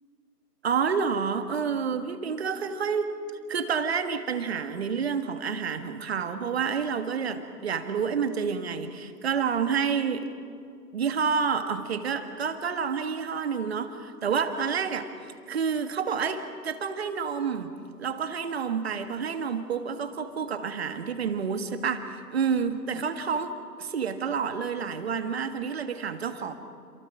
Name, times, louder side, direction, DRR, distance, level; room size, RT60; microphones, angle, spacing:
voice 1, 0.6-3.1 3.5-10.3 10.9-15.1 15.5-17.7 18.0-23.5 23.8-26.5, right 6 dB, 40° right, 9 dB, 1.7 m, -29 dB
28.0 x 27.5 x 5.0 m, 2.3 s
figure-of-eight pair, 145°, 49 cm